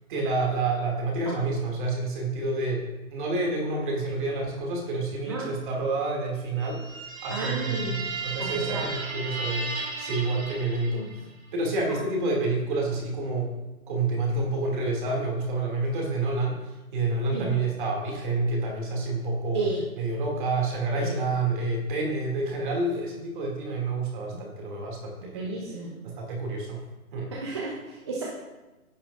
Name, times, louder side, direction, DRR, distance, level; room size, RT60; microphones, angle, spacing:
voice 1, 0.1-11.2 11.5-13.5 13.9-16.6 16.9-19.6 20.0-25.6 26.0-26.8 27.1-27.3, right 2 dB, 35° right, -1 dB, 2.4 m, -28 dB
sound 1, 6.6-11.3, right 3 dB, 65° right, 2.2 m, -35 dB
voice 2, 7.3-8.0 8.4-8.8 10.9-11.3 11.9-12.0 17.3-17.5 19.5-19.9 20.9-21.2 25.3-25.9 27.3-28.2, right 3 dB, 20° right, -4 dB, 0.6 m, -33 dB
15.0 x 5.6 x 2.5 m, 1.1 s
figure-of-eight pair, 145°, 43 cm